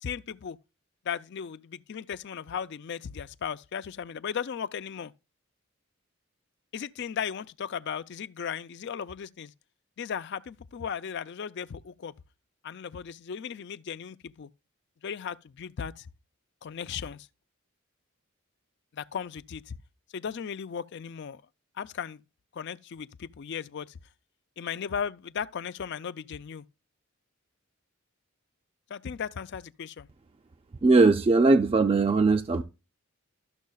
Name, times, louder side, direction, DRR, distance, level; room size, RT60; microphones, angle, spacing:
voice 1, 0.0-0.6 1.1-5.1 6.7-9.5 10.0-12.1 12.6-14.5 15.0-16.1 16.6-17.3 18.9-19.8 20.1-21.4 21.8-22.2 22.5-23.9 24.6-26.6 28.9-30.1, left 7 dB, 55° left, 0.4 m, -36 dB
voice 2, 30.8-32.6, right 3 dB, 25° right, 0.3 m, -20 dB
13.0 x 6.4 x 2.3 m
head